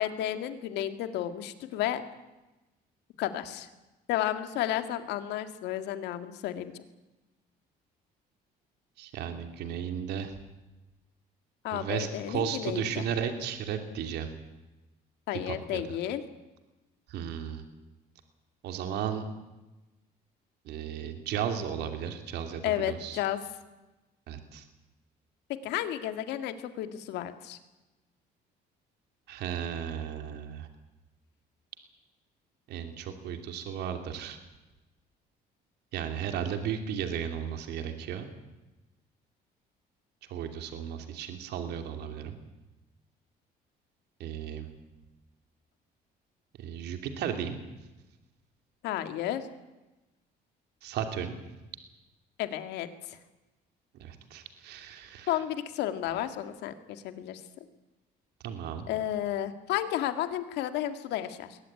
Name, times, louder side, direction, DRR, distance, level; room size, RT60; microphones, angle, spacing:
voice 1, 0.0-2.0 3.2-3.7 4.1-6.7 11.6-13.0 15.3-16.2 22.6-23.4 25.6-27.6 48.8-49.4 52.4-53.2 55.3-57.4 58.9-61.6, left 12 dB, 85° left, 9 dB, 2.1 m, -32 dB
voice 2, 9.0-10.4 11.7-14.3 15.3-15.8 17.1-17.6 18.6-19.3 20.6-23.2 24.3-24.6 29.3-30.7 32.7-34.4 35.9-38.3 40.3-42.4 44.2-44.7 46.6-47.6 50.8-51.4 54.0-55.4 58.4-58.9, right 8 dB, 80° right, 6 dB, 2.9 m, -35 dB
21.5 x 18.5 x 9.8 m, 1.1 s
cardioid pair, 110°, 17 cm